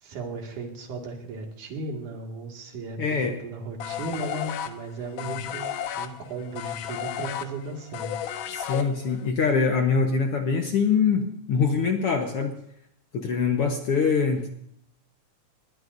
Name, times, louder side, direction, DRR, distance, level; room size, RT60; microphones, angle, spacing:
voice 1, 0.0-8.1, right 3 dB, 75° right, 1 dB, 3.5 m, -36 dB
voice 2, 3.0-3.4 8.5-12.5 13.1-14.5, left 5 dB, 60° left, 3 dB, 1.6 m, -24 dB
sound 1, 3.8-9.3, left 9 dB, 85° left, 2.5 m, -33 dB
20.5 x 20.0 x 2.6 m, 0.73 s
omnidirectional pair, 3.7 m